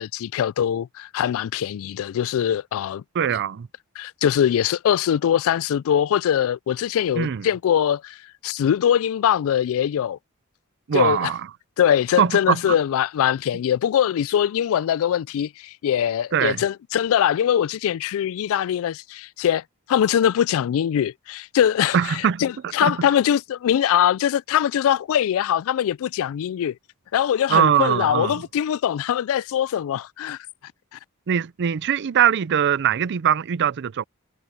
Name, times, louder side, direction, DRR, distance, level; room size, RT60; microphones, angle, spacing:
voice 1, 0.0-3.0 4.0-8.2 8.4-10.2 10.9-11.3 11.8-19.6 19.9-26.7 27.1-30.4, left 9 dB, 65° left, 0.3 m, -22 dB
voice 2, 3.1-3.7 7.2-7.5 10.9-11.4 12.2-12.7 16.3-16.6 21.9-22.5 22.8-23.0 27.5-28.4 31.3-34.0, right 8 dB, 50° right, 0.4 m, -21 dB
head